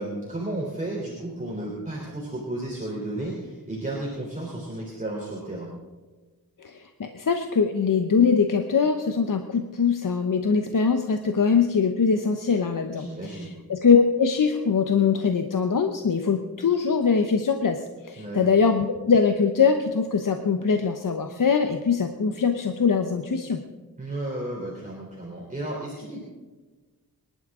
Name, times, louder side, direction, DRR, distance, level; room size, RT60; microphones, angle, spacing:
voice 1, 0.0-5.7 12.9-13.5 18.2-18.4 24.0-26.2, right 1 dB, 20° right, -3 dB, 3.6 m, -33 dB
voice 2, 6.6-23.6, left 5 dB, 60° left, 6 dB, 1.0 m, -22 dB
25.0 x 11.5 x 3.8 m, 1.3 s
wide cardioid pair, 80°, 36 cm